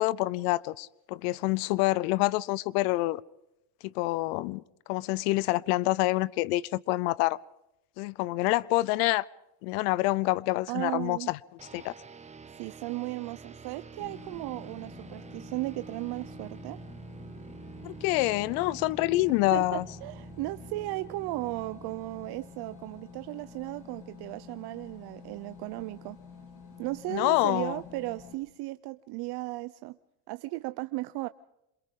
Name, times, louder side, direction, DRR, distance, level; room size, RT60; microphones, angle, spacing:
voice 1, 0.0-3.2 3.8-4.6 4.9-7.4 8.0-9.3 9.6-11.4 11.7-11.9 17.8-19.8 27.1-27.8, left 19 dB, 80° left, 0.7 m, -27 dB
voice 2, 10.7-11.3 12.6-16.8 19.5-26.2 26.8-30.0 30.3-31.3, right 20 dB, 55° right, 0.7 m, -36 dB
sound 1, 11.6-23.8, right 4 dB, 15° right, 0.9 m, -48 dB
sound 2, 14.0-28.3, left 5 dB, 40° left, 4.3 m, -49 dB
27.0 x 27.0 x 3.8 m
cardioid pair, 130°, 46 cm